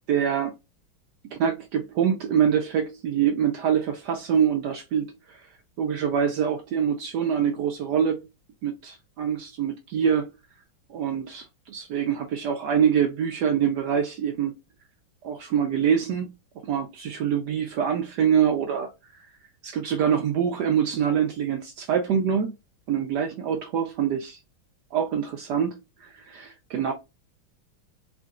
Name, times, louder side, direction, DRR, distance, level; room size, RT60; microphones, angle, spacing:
voice 1, 0.1-0.5 1.3-5.4 5.8-8.2 8.6-10.3 10.9-14.6 15.2-16.3 16.6-18.9 19.6-22.5 22.9-24.4 24.9-26.9, right 8 dB, 75° right, 1.0 m, -25 dB
4.7 x 2.5 x 2.4 m
omnidirectional pair, 2.2 m